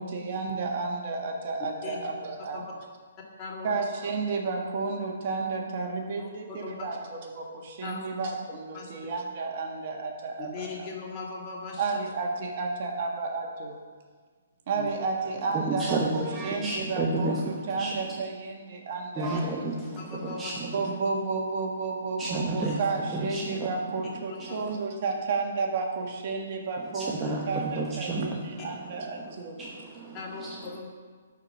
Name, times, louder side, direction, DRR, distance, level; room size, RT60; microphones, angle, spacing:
voice 1, 0.0-2.6 3.6-10.9 11.8-13.8 14.7-17.4 17.7-19.4 20.7-29.6, right 4 dB, 45° right, 2 dB, 1.6 m, -32 dB
voice 2, 3.4-3.7 6.2-6.3 6.6-6.9 7.8-8.1 8.7-8.9 10.4-12.0 14.7-14.9 19.2-19.4 20.0-20.6 24.0-24.7 30.1-30.9, left 4 dB, 30° left, -2 dB, 2.3 m, -39 dB
voice 3, 15.5-18.2 19.1-20.9 22.2-24.7 26.8-30.8, right 2 dB, 15° right, -3 dB, 1.1 m, -33 dB
11.5 x 4.7 x 6.6 m, 1.5 s
hypercardioid pair, 135°, 0 cm